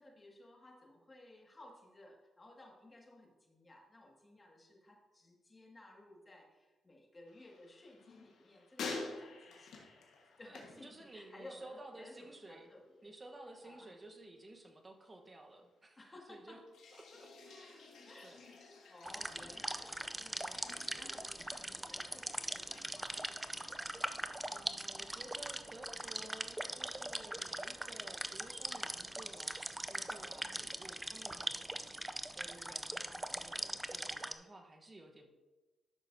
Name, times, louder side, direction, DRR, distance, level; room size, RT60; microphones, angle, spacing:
voice 1, 0.0-10.0 10.4-13.1 13.6-13.9 16.0-16.6 17.1-17.2 18.1-23.4 30.4-30.7, left 1 dB, 30° left, 0 dB, 2.0 m, -57 dB
sound 1, 7.3-11.7 12.0-12.5 16.7-24.6, left 3 dB, 80° left, 1.4 m, -51 dB
voice 2, 10.4-12.7 13.0-16.0 16.3-16.6 17.0-18.5 20.4-20.8 24.5-31.7 32.3-35.3, right 2 dB, 30° right, 4 dB, 1.2 m, -54 dB
sound 2, 19.0-34.3, right 1 dB, 15° right, 0.5 m, -41 dB
12.0 x 6.2 x 2.7 m, 1.2 s
cardioid pair, 75°, 0 cm